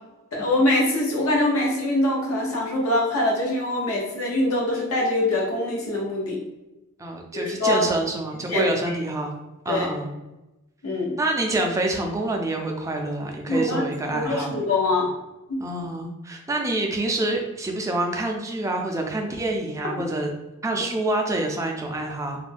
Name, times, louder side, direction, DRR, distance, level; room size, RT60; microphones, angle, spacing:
voice 1, 0.3-6.4 7.3-7.9 8.5-8.6 9.7-9.9 10.8-11.2 13.5-13.8 14.1-15.1 15.5-15.6, left 1 dB, 80° left, -3 dB, 0.9 m, -23 dB
voice 2, 7.0-9.3 9.7-10.2 11.2-14.5 15.6-20.3 20.6-22.4, right 2 dB, 15° right, 1 dB, 0.4 m, -27 dB
2.5 x 2.2 x 3.3 m, 1.0 s
head